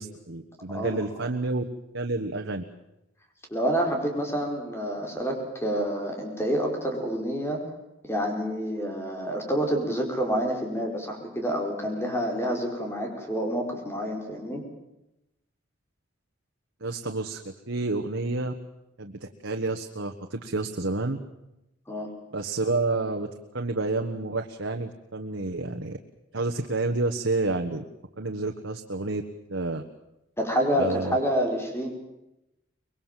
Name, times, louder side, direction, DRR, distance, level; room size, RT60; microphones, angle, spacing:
voice 1, 0.0-1.6 1.9-2.6 16.8-18.5 19.0-21.2 22.3-23.3 23.5-26.0 26.3-27.8 28.2-29.2 29.5-29.8 30.7-31.2, right 3 dB, 90° right, 4 dB, 1.4 m, -29 dB
voice 2, 0.7-1.0 3.5-7.6 8.1-14.6 21.9-22.1 30.4-31.9, equal, 15° left, 2 dB, 4.9 m, -28 dB
24.5 x 21.5 x 7.5 m, 0.91 s
head